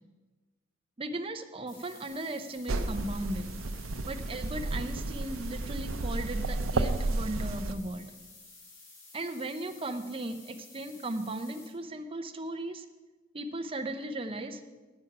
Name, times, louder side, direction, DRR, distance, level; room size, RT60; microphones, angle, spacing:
voice 1, 1.0-3.5 4.1-8.1 9.1-12.9 13.3-14.6, right 1 dB, 25° right, 8 dB, 0.7 m, -37 dB
sound 1, 1.7-11.7, left 3 dB, 65° left, 3.6 m, -53 dB
sound 2, 2.7-7.7, right 2 dB, 80° right, 0.7 m, -32 dB
9.6 x 8.7 x 5.8 m, 1.2 s
head